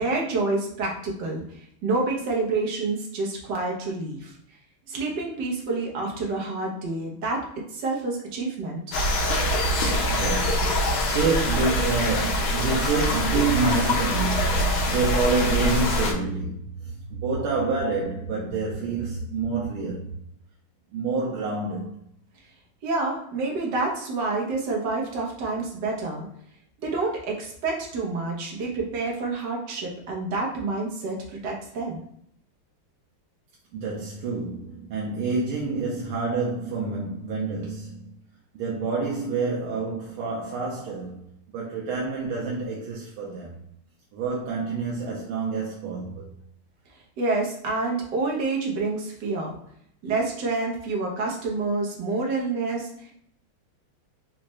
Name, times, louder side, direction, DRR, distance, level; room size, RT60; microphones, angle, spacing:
voice 1, 0.0-1.4 1.8-4.3 4.9-7.4 7.7-9.0 22.8-26.3 26.8-32.0 47.2-49.6 50.0-53.1, right 3 dB, 60° right, 1.4 m, -28 dB
sound 1, 8.9-16.1, left 1 dB, 75° left, 1.5 m, -24 dB
voice 2, 10.1-20.1 20.9-21.9 33.7-38.1 38.5-43.6 44.1-46.3, right 4 dB, 85° right, 1.5 m, -28 dB
sound 2, 12.7-20.1, right 3 dB, 60° left, 1.3 m, -36 dB
4.3 x 2.4 x 3.0 m
omnidirectional pair, 2.3 m